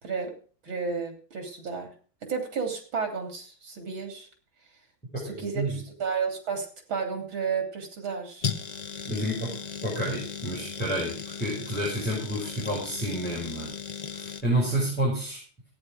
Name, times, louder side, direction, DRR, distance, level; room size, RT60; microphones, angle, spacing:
voice 1, 0.6-1.9 2.3-4.3 5.2-8.5, right 5 dB, 90° right, 3 dB, 3.9 m, -32 dB
voice 2, 5.1-5.8 9.1-9.5 9.8-13.7 14.1-15.4, right 1 dB, 5° left, -5 dB, 5.4 m, -29 dB
sound 1, 8.4-14.4, left 6 dB, 65° left, 0.4 m, -36 dB
14.0 x 9.7 x 5.1 m, 0.41 s
omnidirectional pair, 2.1 m